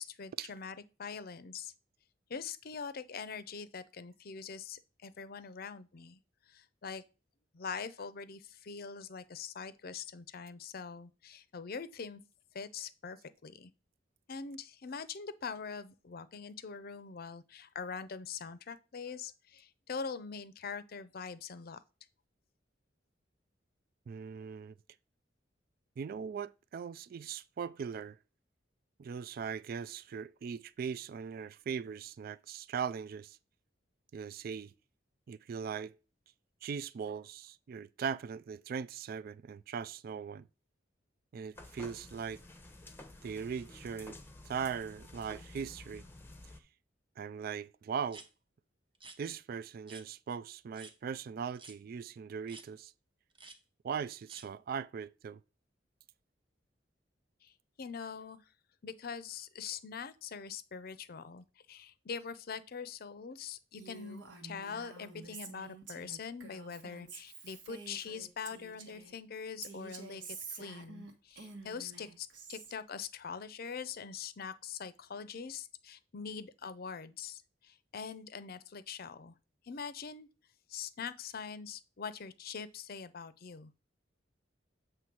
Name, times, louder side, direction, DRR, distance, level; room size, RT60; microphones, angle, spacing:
voice 1, 0.0-1.7 2.3-6.2 6.5-7.0 7.5-12.2 12.5-13.2 13.4-13.7 14.3-21.8 57.4-57.5 57.8-58.4 58.8-79.3 79.6-80.3 80.7-83.7, left 6 dB, 55° left, 0.6 m, -43 dB
voice 2, 24.1-24.7 26.0-28.2 29.0-33.4 34.1-34.7 35.3-35.9 36.6-40.5 41.3-42.4 43.2-44.2 44.4-46.0 47.2-48.2 49.2-52.9 53.8-55.4, right 6 dB, 55° right, 0.3 m, -39 dB
sound 1, 41.5-46.6, left 2 dB, 10° left, 0.7 m, -52 dB
sound 2, 48.1-48.3 48.9-49.2 49.9-50.1 50.7-50.9 51.6-51.8 52.5-52.7 53.3-53.6 54.3-54.5, right 3 dB, 25° right, 0.8 m, -51 dB
Female speech woman speaking, 63.8-69.2 69.6-72.7, right 4 dB, 80° right, 1.4 m, -49 dB
7.7 x 3.2 x 5.9 m
head